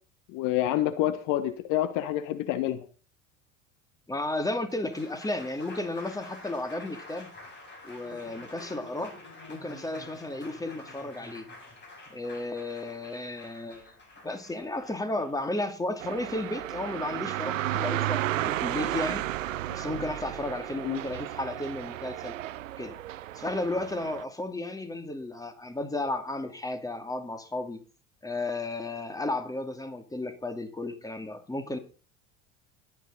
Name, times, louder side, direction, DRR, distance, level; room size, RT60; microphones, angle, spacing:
voice 1, 0.3-2.8 20.8-21.0, left 13 dB, 55° left, 11 dB, 1.4 m, -27 dB
voice 2, 4.1-7.3 7.8-9.2 9.5-11.5 12.1-13.9 14.2-19.2 19.7-22.4 22.8-23.0 23.3-27.8 28.2-31.8, left 2 dB, 10° left, 8 dB, 2.6 m, -33 dB
Applause, 4.7-16.8, left 2 dB, 30° left, 7.4 m, -48 dB
sound 1, 16.0-24.2, right 14 dB, 75° right, 0.7 m, -33 dB
21.0 x 9.0 x 4.0 m, 0.36 s
figure-of-eight pair, 70°, 39 cm